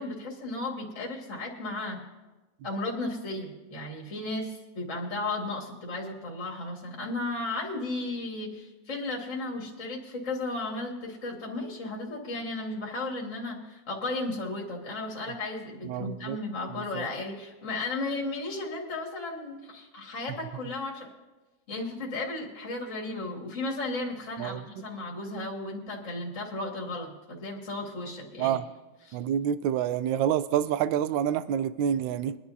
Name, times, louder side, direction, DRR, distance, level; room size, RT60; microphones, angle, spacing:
voice 1, 0.0-2.0 2.6-21.1 21.7-28.6 29.1-29.2, left 2 dB, 40° left, -1 dB, 2.0 m, -34 dB
voice 2, 15.8-16.4 16.7-17.0 24.4-24.6 28.4-28.6 29.1-32.4, right 9 dB, 75° right, 13 dB, 1.2 m, -28 dB
23.5 x 10.5 x 2.7 m, 1.1 s
omnidirectional pair, 2.2 m